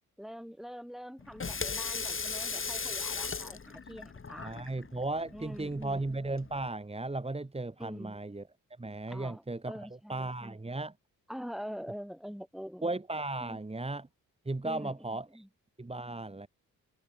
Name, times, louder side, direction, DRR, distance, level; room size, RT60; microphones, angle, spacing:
voice 1, 0.2-4.7 5.3-6.1 7.8-8.2 9.1-10.6 11.3-12.9 13.4-13.6 14.6-15.5, equal, ahead, 6.3 m, -44 dB
Water tap faucet / Sink (filling or washing), 1.2-6.7, left 5 dB, 35° left, 3.0 m, -38 dB
voice 2, 4.4-8.4 8.8-9.8 10.1-10.9 12.8-14.1 14.4-15.4 15.8-16.5, right 2 dB, 15° right, 2.7 m, -36 dB
cardioid pair, 105°, 34 cm